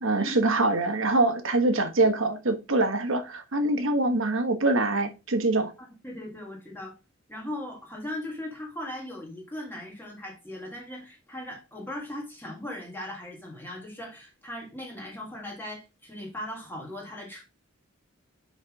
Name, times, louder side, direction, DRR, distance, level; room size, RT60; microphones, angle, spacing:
voice 1, 0.0-5.7, right 2 dB, 65° right, 1.2 m, -24 dB
voice 2, 5.8-7.0 7.3-17.4, left 1 dB, 10° left, 1.6 m, -38 dB
5.9 x 5.4 x 3.5 m
head